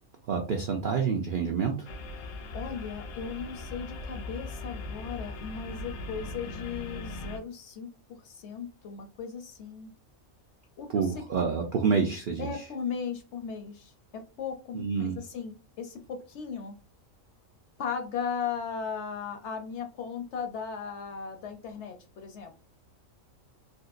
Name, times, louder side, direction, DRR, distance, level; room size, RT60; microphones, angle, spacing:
voice 1, 0.3-1.9 10.9-12.5 14.7-15.1, right 5 dB, 70° right, 3 dB, 0.5 m, -28 dB
sound 1, 1.8-7.4, left 2 dB, 80° left, 1.0 m, -39 dB
voice 2, 2.5-9.9 10.8-11.2 12.4-16.8 17.8-22.5, left 6 dB, 65° left, 6 dB, 0.8 m, -37 dB
3.5 x 2.8 x 2.4 m, 0.33 s
omnidirectional pair, 1.5 m